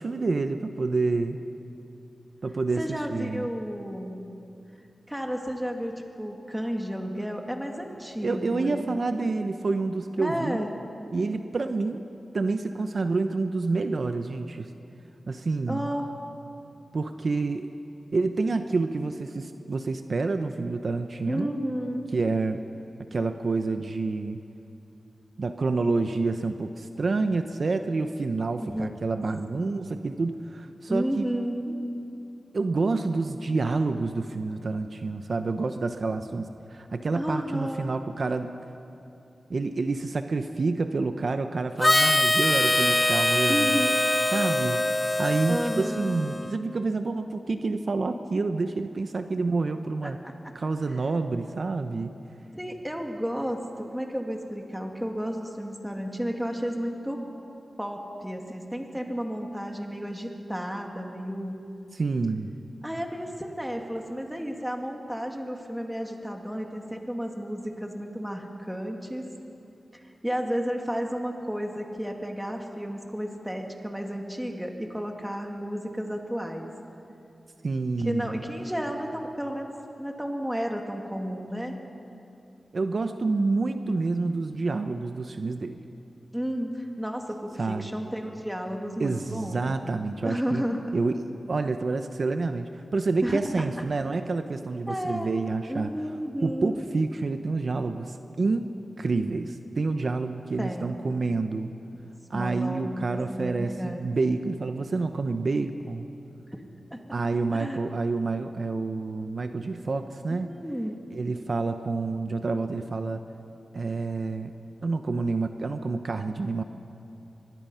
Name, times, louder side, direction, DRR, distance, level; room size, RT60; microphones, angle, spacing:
voice 1, 0.0-1.4 2.4-3.4 8.2-10.7 11.1-12.0 12.3-14.7 15.3-15.9 16.9-17.7 18.1-21.5 22.1-22.6 23.1-24.4 25.4-31.3 32.5-38.5 39.5-43.8 44.3-44.9 45.2-50.2 50.5-52.1 61.9-62.6 77.6-78.4 82.7-85.8 87.6-87.9 89.0-90.6 90.9-95.9 96.4-98.7 99.0-101.7 102.3-106.1 107.1-110.5 111.1-113.2 113.7-114.5 114.8-116.6, right 3 dB, 55° right, 7 dB, 0.8 m, -28 dB
voice 2, 2.8-4.2 5.1-8.9 10.2-10.7 15.7-16.1 21.3-22.1 28.6-28.9 29.5-29.8 30.9-31.8 37.1-37.9 43.5-44.2 45.5-46.1 50.0-50.5 52.5-57.2 57.8-61.6 62.8-69.2 69.9-76.7 78.0-81.8 86.3-89.6 90.2-90.9 93.2-93.7 94.9-95.3 95.7-96.8 100.6-101.0 102.3-104.1 106.5-106.6 106.9-107.0 107.6-107.8 110.3-111.0, equal, 5° right, 2 dB, 2.3 m, -32 dB
Harmonica, 41.8-46.5, left 1 dB, 20° left, 0.4 m, -23 dB
23.5 x 21.5 x 5.7 m, 2.8 s
wide cardioid pair, 90°, 0 cm